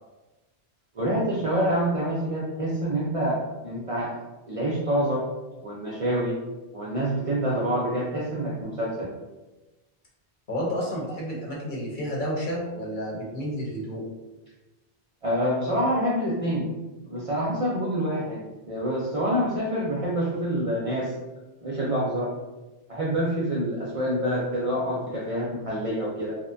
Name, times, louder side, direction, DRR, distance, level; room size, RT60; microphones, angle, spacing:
voice 1, 0.9-4.2 4.5-5.2 5.6-6.4 6.7-9.1 15.2-16.7 17.0-21.1 21.6-22.3 22.9-26.4, equal, 50° right, -6 dB, 0.4 m, -27 dB
voice 2, 10.5-14.0, equal, 55° left, -5 dB, 0.9 m, -30 dB
2.7 x 2.1 x 2.5 m, 1.1 s
omnidirectional pair, 1.1 m